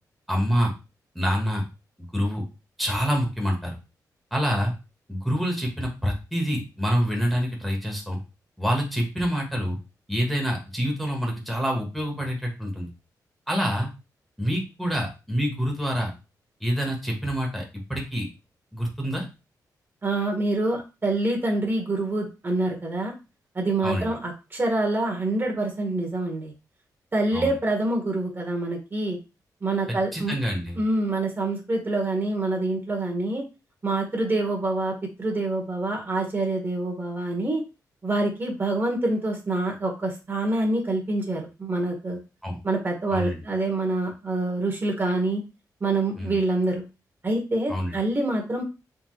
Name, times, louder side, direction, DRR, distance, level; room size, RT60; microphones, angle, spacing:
voice 1, 0.3-0.7 1.1-1.6 2.1-2.4 2.8-3.8 4.3-4.7 5.1-8.2 8.6-9.8 10.1-12.9 13.5-13.9 14.4-16.1 16.6-17.6 17.9-18.3 18.7-19.3 23.8-24.1 27.3-27.5 29.9-30.8 42.4-42.6 43.1-43.4 46.2-46.3 47.7-47.9, equal, ahead, 0 dB, 1.2 m, -26 dB
voice 2, 20.0-23.1 23.5-26.5 27.1-29.2 29.6-30.3 30.8-33.4 33.8-34.9 35.2-37.6 38.0-42.2 42.6-45.4 45.8-46.8 47.2-48.6, right 2 dB, 30° right, 1 dB, 1.3 m, -26 dB
3.9 x 3.4 x 3.1 m, 0.28 s
cardioid pair, 105°, 7 cm